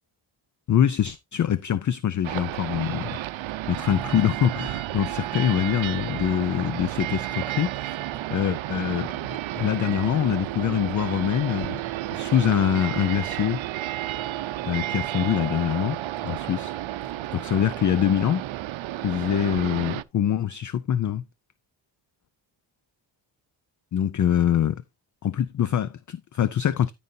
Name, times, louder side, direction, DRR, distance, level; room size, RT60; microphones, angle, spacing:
voice 1, 0.7-3.2 3.7-8.0 8.3-11.8 12.1-13.6 14.7-16.7 17.3-18.4 19.0-21.2 23.9-24.8 25.2-26.9, left 10 dB, 45° left, 0.4 m, -24 dB
sound 1, 2.2-20.0, right 14 dB, 80° right, 0.6 m, -32 dB
13.0 x 5.4 x 2.6 m
wide cardioid pair, 155°, 47 cm